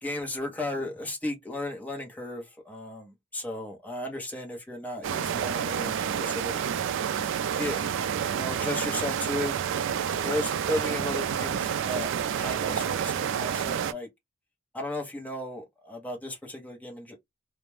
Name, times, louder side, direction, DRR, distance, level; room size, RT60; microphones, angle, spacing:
voice 1, 0.0-6.6 7.2-7.9 8.3-9.5 10.0-14.1 14.7-17.2, left 1 dB, 10° left, 0.8 m, -35 dB
sound 1, 5.0-13.9, right 8 dB, 65° right, 0.3 m, -29 dB
2.4 x 2.1 x 3.1 m
head